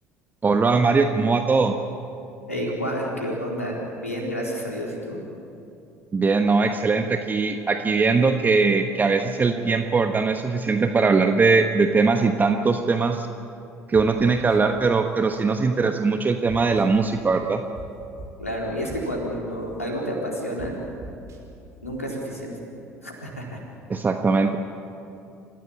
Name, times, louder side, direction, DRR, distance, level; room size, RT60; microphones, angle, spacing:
voice 1, 0.4-1.8 6.1-13.3 13.9-17.6 23.9-24.6, right 4 dB, 25° right, 6 dB, 1.2 m, -21 dB
voice 2, 2.5-5.2 18.4-20.7 21.8-22.5 23.0-23.6, equal, 85° left, -2 dB, 4.0 m, -30 dB
sound 1, 13.9-14.0 14.5-14.6 16.5-16.8 17.8-17.9 18.2-18.3 18.9-19.1 20.6-20.7 21.0-21.4, right 3 dB, 40° right, 5.9 m, -39 dB
29.0 x 15.5 x 8.9 m, 2.7 s
figure-of-eight pair, 60°, 8 cm